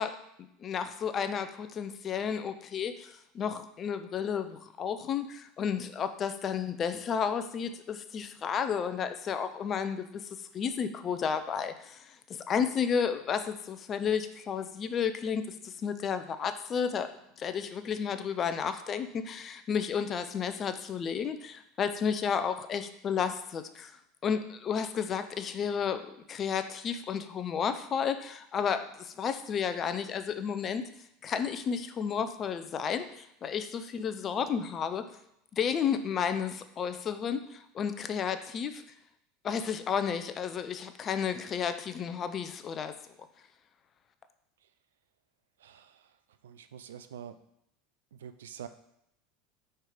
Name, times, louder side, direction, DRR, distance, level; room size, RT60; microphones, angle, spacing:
voice 1, 0.0-12.2 12.5-17.1 17.4-24.0 24.2-30.8 31.2-35.1 35.5-38.8 39.4-43.0, left 7 dB, 35° left, 10 dB, 0.6 m, -32 dB
voice 2, 45.6-46.1 46.4-47.4 48.1-48.7, right 9 dB, 75° right, 11 dB, 0.4 m, -46 dB
4.5 x 4.4 x 5.1 m, 0.78 s
hypercardioid pair, 80°, 0 cm